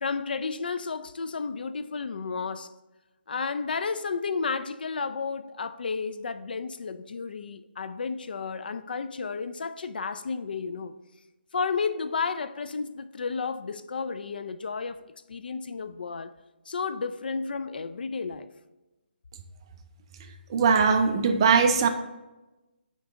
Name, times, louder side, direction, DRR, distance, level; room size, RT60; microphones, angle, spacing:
voice 1, 0.0-2.7 3.3-11.0 11.5-15.0 15.3-16.3 16.7-18.5, left 5 dB, 60° left, 0.4 m, -32 dB
voice 2, 20.5-21.9, right 5 dB, 25° right, 0.5 m, -20 dB
9.1 x 3.9 x 3.5 m
hypercardioid pair, 165°, 6 cm